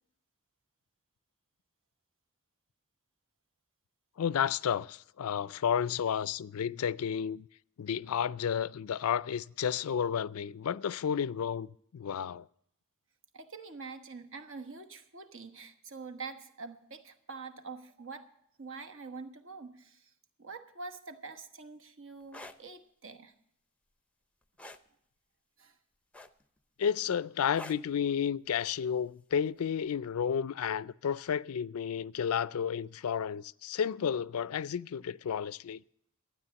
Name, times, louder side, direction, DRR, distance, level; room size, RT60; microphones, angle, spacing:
voice 1, 4.2-7.5 7.8-11.7 11.9-12.5 26.8-35.8, left 8 dB, 75° left, 0.4 m, -32 dB
voice 2, 13.3-18.3 18.6-20.1 20.4-23.3 25.6-25.8, right 4 dB, 60° right, 1.3 m, -45 dB
sound 1, 22.2-22.6 24.6-24.9 26.1-26.6 27.5-27.9 29.3-29.5, left 1 dB, 5° left, 0.6 m, -46 dB
12.5 x 9.2 x 6.9 m
head